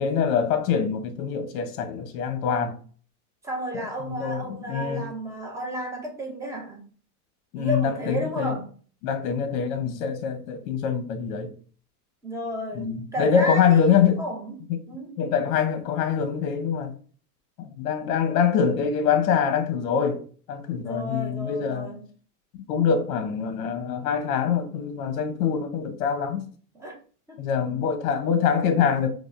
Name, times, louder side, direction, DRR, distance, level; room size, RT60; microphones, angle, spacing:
voice 1, 0.0-2.8 3.7-5.1 7.5-8.6 9.0-11.5 12.7-14.2 15.2-16.9 17.6-21.9 22.5-26.5 27.4-29.1, left 7 dB, 65° left, 0.7 m, -24 dB
voice 2, 3.4-6.8 7.5-8.7 12.2-14.6 14.9-15.2 20.8-22.0 26.7-27.0 27.3-27.8, equal, 5° right, 0.4 m, -33 dB
4.8 x 2.0 x 2.3 m
supercardioid pair, 130°, 46 cm